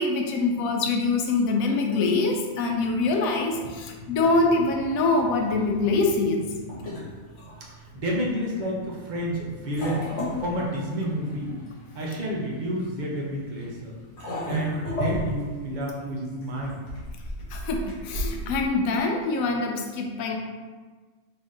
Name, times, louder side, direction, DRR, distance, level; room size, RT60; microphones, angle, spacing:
voice 1, 0.0-6.6 6.9-7.0 17.5-20.4, left 3 dB, 80° left, 2 dB, 1.0 m, -24 dB
sound 1, 4.2-18.7, equal, 60° left, 1.3 m, -35 dB
voice 2, 7.9-10.0 10.4-11.5 11.9-13.9 14.5-16.8, equal, 60° right, -3 dB, 0.5 m, -30 dB
3.3 x 2.6 x 3.6 m, 1.4 s
omnidirectional pair, 1.5 m